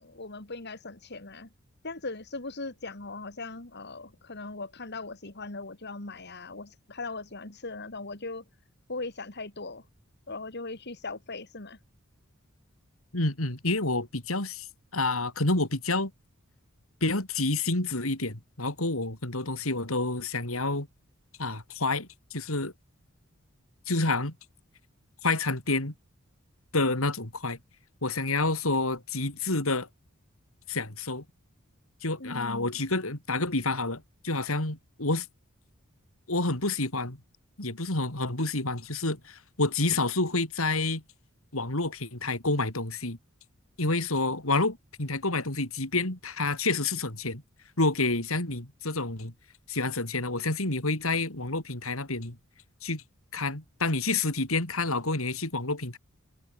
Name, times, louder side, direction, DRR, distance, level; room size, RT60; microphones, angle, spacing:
voice 1, 0.0-1.5 1.8-8.4 8.9-9.8 10.3-11.8 32.2-32.7, left 3 dB, 50° left, 3.0 m, -39 dB
voice 2, 13.1-14.7 14.9-16.1 17.0-20.9 21.4-22.7 23.9-24.4 25.2-25.9 26.7-27.6 28.0-29.9 30.7-31.2 32.0-35.3 36.3-37.2 37.6-41.0 41.5-43.2 43.8-47.4 47.8-49.3 49.7-52.4 52.8-53.0 53.3-56.0, left 2 dB, 80° left, 4.6 m, -28 dB
head